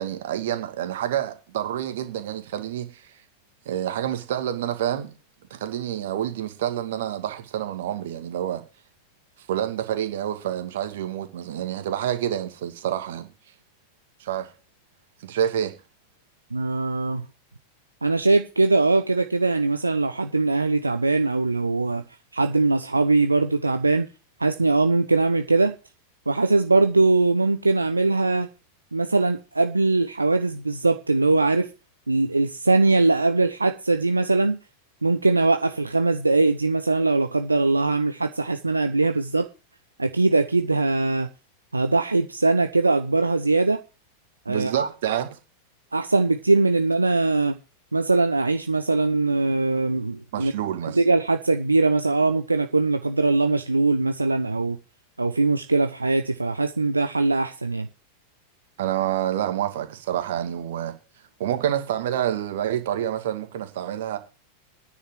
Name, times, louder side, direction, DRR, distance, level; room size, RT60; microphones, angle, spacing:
voice 1, 0.0-3.1 3.7-5.1 5.5-8.6 9.5-13.3 14.2-14.5 15.2-15.7 44.5-45.3 50.3-51.0 58.8-60.9 61.4-64.2, right 11 dB, 55° right, 2.3 m, -28 dB
voice 2, 16.5-17.2 18.0-22.0 22.3-24.1 24.4-25.7 26.3-28.5 28.9-31.7 32.1-34.6 35.0-39.5 40.0-41.3 41.7-43.8 44.5-44.9 45.9-47.6 47.9-50.5 50.9-54.8 55.2-57.9, right 3 dB, 80° right, 0.8 m, -21 dB
9.9 x 7.5 x 7.8 m
figure-of-eight pair, 90°, 0 cm